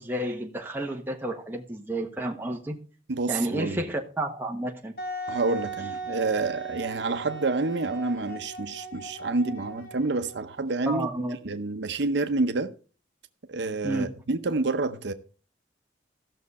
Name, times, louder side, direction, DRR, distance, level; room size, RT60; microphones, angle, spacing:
voice 1, 0.0-2.8 3.3-4.9 10.9-11.4 13.8-14.1, right 1 dB, 10° right, 1.2 m, -31 dB
voice 2, 3.1-3.8 5.3-12.7 13.5-15.1, right 3 dB, 75° right, 0.7 m, -28 dB
Wind instrument woodwind instrument, 5.0-10.6, right 3 dB, 50° left, 1.3 m, -38 dB
15.0 x 6.4 x 4.1 m
head